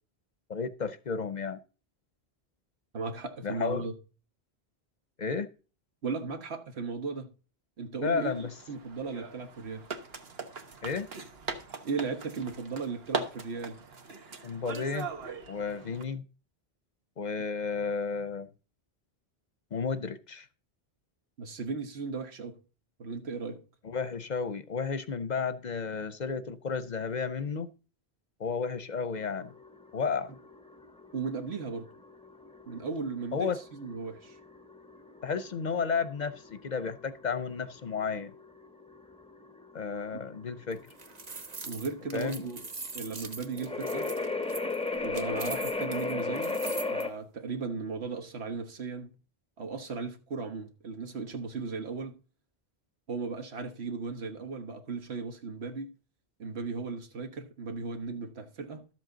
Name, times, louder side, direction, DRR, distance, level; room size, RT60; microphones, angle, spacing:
voice 1, 0.5-1.6 3.4-3.9 5.2-5.5 8.0-8.5 10.8-11.1 14.4-15.1 15.5-16.2 17.2-18.5 19.7-20.5 23.8-27.7 28.4-29.5 29.9-30.3 33.3-33.6 35.2-38.3 39.7-40.8 42.1-42.5, left 5 dB, 50° left, 0.7 m, -32 dB
voice 2, 2.9-3.9 6.0-7.3 7.8-9.8 11.8-13.8 21.4-22.6 23.0-23.6 31.1-31.9 32.7-34.3 41.7-42.7 42.9-44.1 45.0-46.6 46.9-49.2 49.6-52.2 53.1-55.9 56.4-58.9, right 4 dB, 90° right, 1.5 m, -36 dB
sound 1, 8.2-16.0, right 4 dB, 70° right, 1.4 m, -40 dB
sound 2, 29.2-47.1, left 3 dB, 5° left, 0.5 m, -36 dB
sound 3, 40.7-47.0, right 4 dB, 45° right, 1.0 m, -42 dB
12.0 x 7.6 x 3.9 m
omnidirectional pair, 1.1 m